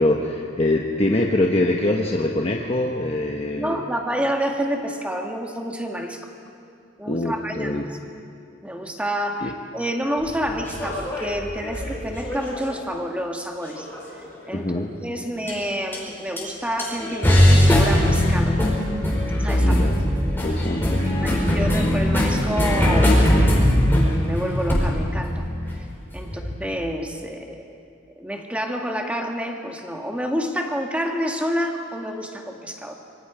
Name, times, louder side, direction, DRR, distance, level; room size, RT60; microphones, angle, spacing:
voice 1, 0.0-3.8 7.1-7.8 9.4-9.5 14.5-14.9 19.6-20.0 20.4-21.0, left 1 dB, 30° left, 0 dB, 1.1 m, -23 dB
voice 2, 3.5-6.3 7.0-8.0 8.6-13.9 14.5-18.7 19.4-19.8 21.0-23.5 23.8-25.8 26.1-27.8 28.2-33.0, equal, 5° right, 2 dB, 1.7 m, -28 dB
sound 1, 10.3-12.8 13.8-14.3 15.5-15.6 15.9-16.0 16.4-16.5 16.8-26.5, left 1 dB, 10° left, 4.6 m, -20 dB
25.5 x 23.0 x 5.0 m, 2.5 s
head